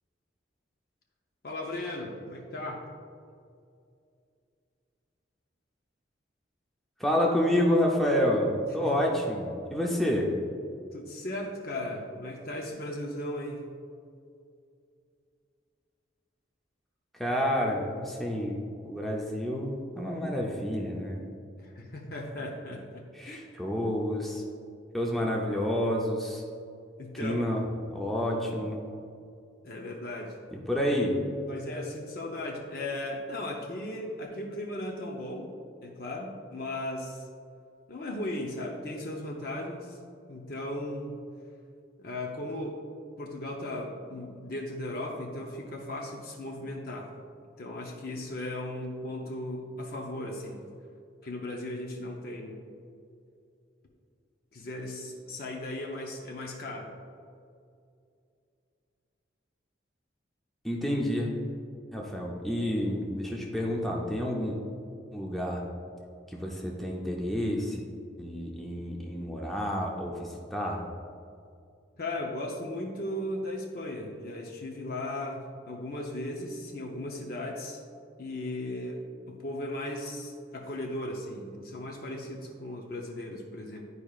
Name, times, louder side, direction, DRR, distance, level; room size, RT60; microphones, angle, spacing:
voice 1, 1.4-2.9 8.8-8.9 10.9-13.6 21.6-23.4 27.0-27.4 29.6-30.3 31.5-35.5 35.8-37.2 37.9-40.0 40.3-41.2 42.0-42.8 43.2-47.1 47.6-50.6 51.2-52.6 54.5-56.9 72.0-77.8 78.2-79.0 79.3-83.8, left 1 dB, 50° left, -1 dB, 0.7 m, -36 dB
voice 2, 7.0-10.3 17.2-18.6 18.8-21.2 23.1-24.4 24.9-26.4 27.2-27.6 27.9-28.8 30.7-31.2 60.6-61.3 61.9-64.6 65.1-65.6 66.3-67.8 68.2-70.8, equal, ahead, -2 dB, 0.6 m, -29 dB
11.0 x 4.9 x 2.4 m, 2.4 s
head